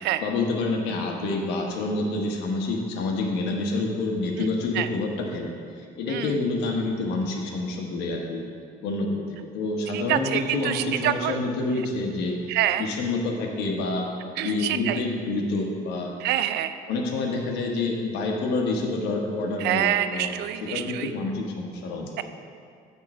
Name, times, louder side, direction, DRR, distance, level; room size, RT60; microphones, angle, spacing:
voice 1, 0.2-5.5 5.8-8.4 8.8-9.2 9.5-12.4 12.8-14.1 14.4-16.1 16.9-20.3 20.6-22.1, left 3 dB, 85° left, 1 dB, 1.1 m, -27 dB
voice 2, 6.1-6.4 9.9-11.4 12.5-12.9 14.4-15.0 16.2-16.8 19.6-21.1 22.2-22.3, right 12 dB, 80° right, 11 dB, 0.4 m, -26 dB
8.5 x 3.7 x 6.1 m, 2.3 s
cardioid pair, 110°, 17 cm